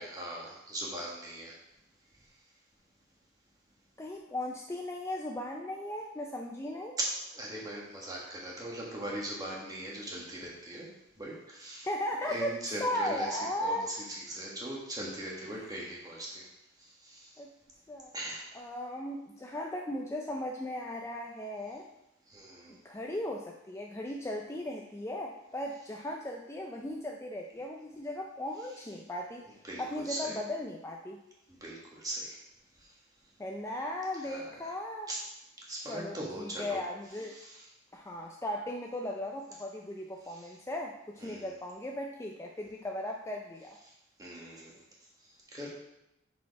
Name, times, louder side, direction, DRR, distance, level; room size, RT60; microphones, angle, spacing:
voice 1, 0.0-1.5 7.3-10.9 11.2-11.9 12.3-13.3 13.6-13.8 14.3-16.5 17.0-17.3 18.1-18.5 22.3-22.7 29.6-30.4 31.6-32.4 34.2-34.4 35.1-35.2 35.7-36.8 37.3-37.5 40.3-40.4 41.2-41.5 44.2-44.7 45.5-45.7, right 1 dB, 20° right, -4 dB, 1.6 m, -40 dB
voice 2, 4.0-7.0 11.9-13.9 17.4-17.5 17.9-18.1 18.5-21.9 22.7-29.4 29.8-31.2 33.4-35.1 35.9-37.4 37.9-43.8, left 1 dB, 15° left, 0 dB, 0.4 m, -37 dB
6.2 x 4.7 x 4.7 m, 0.87 s
head